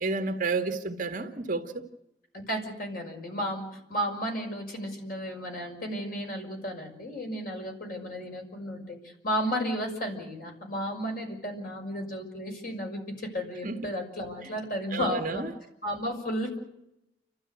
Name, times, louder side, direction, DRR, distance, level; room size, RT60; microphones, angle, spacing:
voice 1, 0.0-1.8 13.6-13.8 14.9-15.5, right 3 dB, 45° right, 2.0 m, -30 dB
voice 2, 2.5-15.4 15.8-16.6, equal, 50° left, 6.2 m, -33 dB
30.0 x 13.5 x 8.2 m
head